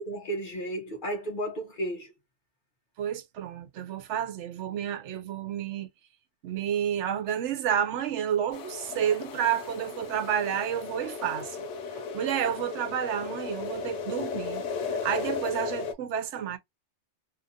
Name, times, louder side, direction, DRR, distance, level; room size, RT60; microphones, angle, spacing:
voice 1, 0.0-2.1, right 1 dB, 45° left, 0.9 m, -33 dB
voice 2, 3.0-5.9 6.4-11.7 12.1-16.6, right 9 dB, 70° right, 0.9 m, -30 dB
sound 1, 8.5-15.9, left 5 dB, 75° left, 0.9 m, -35 dB
2.7 x 2.5 x 2.6 m
omnidirectional pair, 1.3 m